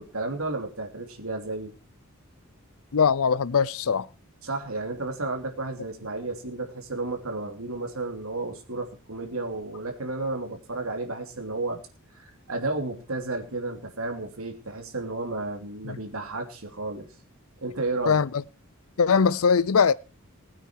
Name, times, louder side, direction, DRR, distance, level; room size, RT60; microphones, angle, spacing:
voice 1, 0.0-1.7 4.4-11.8 12.1-17.1 17.6-18.2, right 2 dB, 75° right, 3.1 m, -32 dB
voice 2, 2.9-4.1 15.8-16.0 18.1-18.3 19.0-19.9, left 6 dB, 75° left, 0.6 m, -21 dB
20.0 x 8.9 x 4.6 m
head